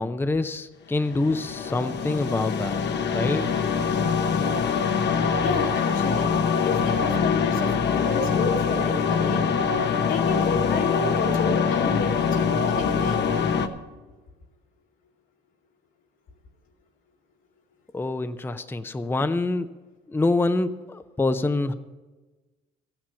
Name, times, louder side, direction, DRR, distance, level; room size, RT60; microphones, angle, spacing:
voice 1, 0.0-2.8 3.1-3.6 17.9-19.7 20.1-21.7, left 2 dB, 10° left, 10 dB, 0.5 m, -26 dB
sound 1, 1.0-13.7, left 6 dB, 60° left, 0.9 m, -24 dB
voice 2, 5.1-6.3 6.6-9.5 10.1-13.2, left 4 dB, 85° left, 0 dB, 2.2 m, -30 dB
14.0 x 8.9 x 5.7 m, 1.2 s
cardioid pair, 90°, 20 cm